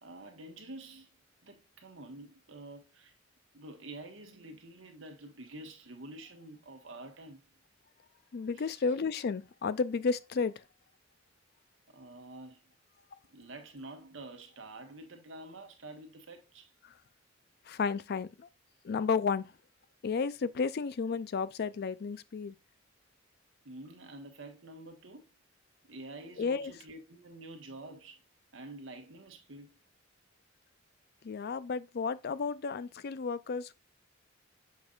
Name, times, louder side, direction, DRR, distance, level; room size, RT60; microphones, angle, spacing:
voice 1, 0.0-1.1 1.4-3.1 3.5-7.4 8.5-8.8 11.9-12.6 13.3-16.7 23.6-25.3 25.8-28.2 28.5-29.7, right 2 dB, 70° right, 1.4 m, -48 dB
voice 2, 8.3-10.5 17.7-18.5 18.8-19.5 20.0-22.5 26.4-26.7 31.2-33.7, left 5 dB, 55° left, 0.4 m, -32 dB
7.1 x 5.4 x 2.4 m
head